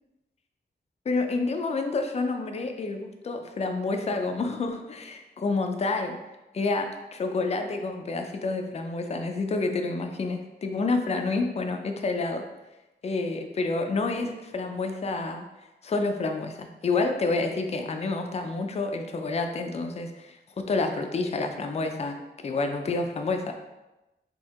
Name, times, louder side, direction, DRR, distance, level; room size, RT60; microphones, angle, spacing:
voice 1, 1.1-6.2 6.5-12.4 13.0-15.4 15.8-20.4 20.7-22.2 22.4-23.5, left 3 dB, 35° left, 4 dB, 0.4 m, -28 dB
4.4 x 2.8 x 3.5 m, 1.0 s
wide cardioid pair, 145°, 19 cm